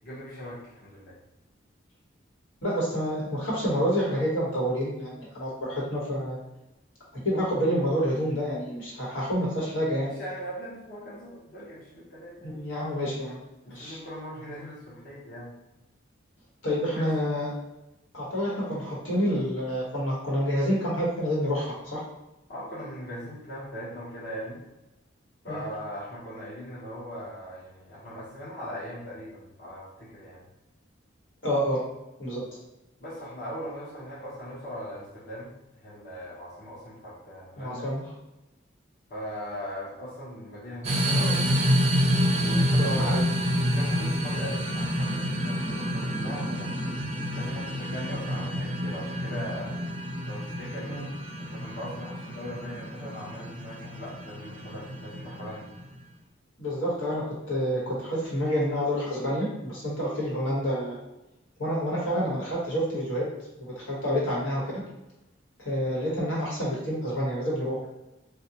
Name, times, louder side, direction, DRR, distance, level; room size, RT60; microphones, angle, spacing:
voice 1, 0.0-1.2 10.0-12.6 13.6-15.5 16.9-17.1 22.5-24.6 25.4-30.4 33.0-37.9 39.1-41.6 42.3-43.1 43.7-46.9 47.3-49.7 50.3-55.7, equal, 50° left, -8 dB, 1.0 m, -40 dB
voice 2, 2.6-6.4 7.2-10.1 12.4-13.4 13.7-14.0 16.6-17.5 18.1-22.0 25.4-25.6 31.4-31.8 32.2-32.4 37.6-38.0 42.8-43.2 50.9-51.1 56.6-61.0 61.6-63.3 63.6-64.8 65.6-67.8, equal, 85° left, -6 dB, 1.3 m, -28 dB
sound 1, 40.8-55.9, equal, 35° right, 0.4 m, -28 dB
4.2 x 2.3 x 2.8 m, 0.97 s
head